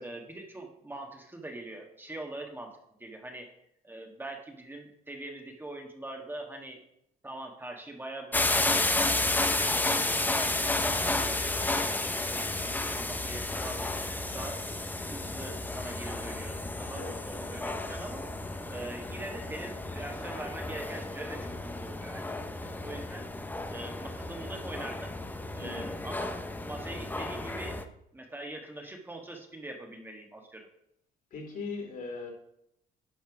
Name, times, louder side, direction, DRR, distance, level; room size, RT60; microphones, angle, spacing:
voice 1, 0.0-2.7 3.0-3.5 3.8-6.8 7.2-8.9 9.3-14.6 15.0-18.2 18.7-22.2 22.6-23.2 23.7-25.1 25.5-27.8 28.1-30.7, right 1 dB, 10° right, 2 dB, 1.4 m, -43 dB
sound 1, 8.3-27.8, left 2 dB, 10° left, 0.8 m, -32 dB
voice 2, 25.6-25.9 31.3-32.3, left 4 dB, 55° left, 2 dB, 3.0 m, -39 dB
11.0 x 4.3 x 6.0 m, 0.76 s
cardioid pair, 110°, 17 cm